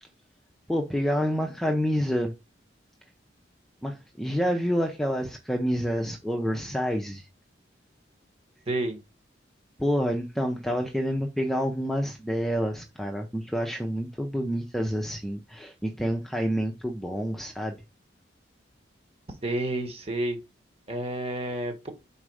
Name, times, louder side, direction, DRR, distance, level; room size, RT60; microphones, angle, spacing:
voice 1, 0.7-2.3 3.8-7.3 9.8-17.8, equal, ahead, 0.6 m, -28 dB
voice 2, 8.7-9.0 19.4-20.4 20.9-21.9, right 1 dB, 30° right, 1.3 m, -30 dB
5.0 x 4.2 x 4.8 m
head